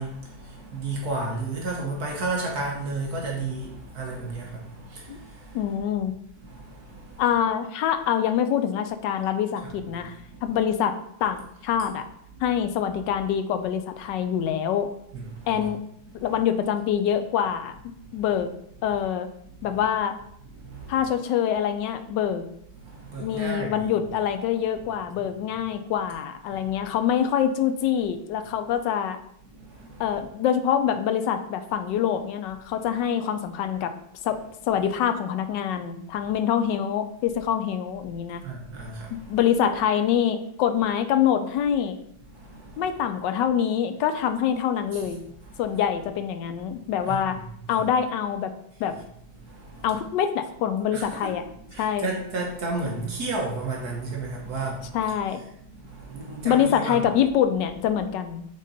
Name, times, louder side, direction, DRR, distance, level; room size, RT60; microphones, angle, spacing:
voice 1, 0.0-5.8 6.3-7.2 9.6-9.7 10.0-10.6 11.8-11.9 12.3-12.4 15.1-15.7 16.1-16.4 18.0-18.2 18.9-19.0 19.5-19.8 20.5-21.1 22.8-23.9 25.5-25.6 26.5-26.7 29.5-30.2 38.3-39.4 42.3-43.0 44.9-45.2 45.4-45.6 46.8-47.9 48.9-49.0 49.4-49.9 50.9-51.3 51.7-55.2 55.7-57.0, right 3 dB, 60° right, -1 dB, 1.4 m, -34 dB
voice 2, 5.5-6.1 7.2-10.1 10.4-12.1 12.4-14.9 15.5-15.8 16.2-17.8 18.1-18.5 18.8-19.3 19.6-20.1 20.9-22.4 23.2-29.2 30.0-33.9 34.2-34.4 34.7-38.4 39.1-42.0 42.8-45.2 45.6-47.4 47.7-48.5 48.8-49.0 49.8-51.4 51.8-52.1 54.9-55.4 56.4-58.5, left 9 dB, 75° left, 9 dB, 1.2 m, -25 dB
7.3 x 3.8 x 4.0 m, 0.74 s
omnidirectional pair, 2.0 m